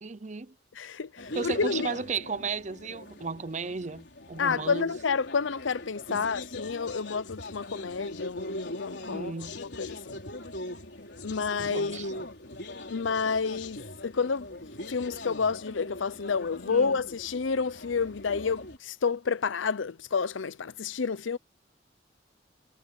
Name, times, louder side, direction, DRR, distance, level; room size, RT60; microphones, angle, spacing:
voice 1, 0.0-0.5 1.3-4.9 6.1-6.3 9.1-9.6 11.6-12.3 16.7-17.0, right 4 dB, 40° right, 0.7 m, -35 dB
voice 2, 0.7-1.9 4.4-10.2 11.2-12.1 12.9-14.5 14.9-21.4, left 5 dB, 85° left, 0.6 m, -30 dB
sound 1, 1.2-18.8, left 1 dB, 65° left, 4.4 m, -41 dB
head